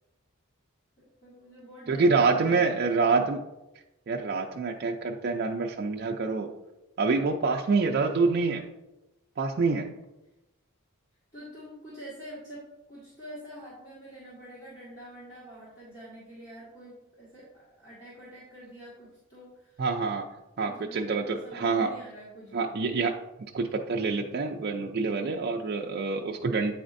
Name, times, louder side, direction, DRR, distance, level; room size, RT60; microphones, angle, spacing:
voice 1, 1.0-3.3 11.3-19.8 20.6-21.1 21.4-22.7, equal, 40° left, -9 dB, 1.7 m, -47 dB
voice 2, 1.9-3.4 4.1-6.5 7.0-8.7 9.4-9.9 19.8-20.3 20.6-21.9 22.5-23.2 23.5-26.7, right 4 dB, 50° right, 1 dB, 0.4 m, -26 dB
8.7 x 4.2 x 2.5 m, 0.97 s
head